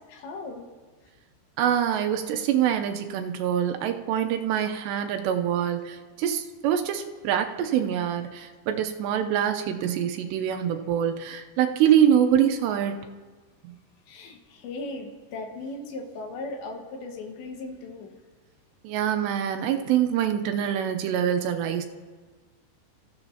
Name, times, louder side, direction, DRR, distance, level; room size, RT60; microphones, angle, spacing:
voice 1, 0.1-0.6 14.1-18.2, left 2 dB, 85° left, 2 dB, 3.8 m, -37 dB
voice 2, 1.6-13.0 13.6-13.7 18.8-21.9, right 9 dB, 90° right, 6 dB, 2.9 m, -25 dB
29.0 x 15.0 x 2.9 m, 1.4 s
omnidirectional pair, 5.0 m